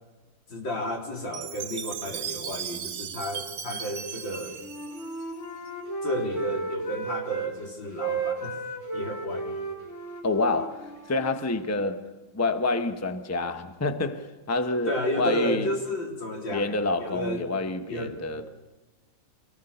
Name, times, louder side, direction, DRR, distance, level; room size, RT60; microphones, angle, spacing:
voice 1, 0.5-4.6 6.0-8.5 8.9-9.6 14.9-17.6 17.9-18.2, equal, 90° left, 4.3 m, -32 dB
Chime, 1.3-5.7, right 8 dB, 55° right, 1.3 m, -37 dB
Wind instrument woodwind instrument, 4.1-7.5 7.8-11.8, right 3 dB, 40° left, 4.5 m, -34 dB
voice 2, 10.2-12.1 12.3-15.7 16.5-18.4, left 2 dB, 10° left, 1.0 m, -28 dB
26.0 x 19.0 x 6.9 m
omnidirectional pair, 2.0 m